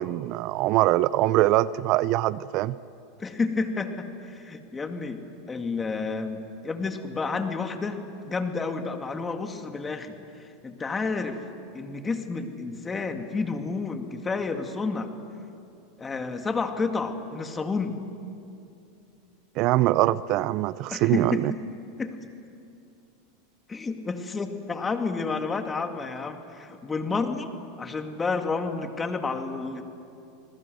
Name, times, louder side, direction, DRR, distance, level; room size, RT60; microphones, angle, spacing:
voice 1, 0.0-2.8 19.6-21.5, right 16 dB, 55° right, 18 dB, 0.5 m, -23 dB
voice 2, 3.2-5.2 5.5-11.4 11.7-15.1 16.0-18.0 20.9-21.6 22.0-22.2 23.7-27.5 27.8-29.8, left 4 dB, 20° left, 6 dB, 2.3 m, -30 dB
29.5 x 20.0 x 7.9 m, 2.6 s
hypercardioid pair, 105°, 0 cm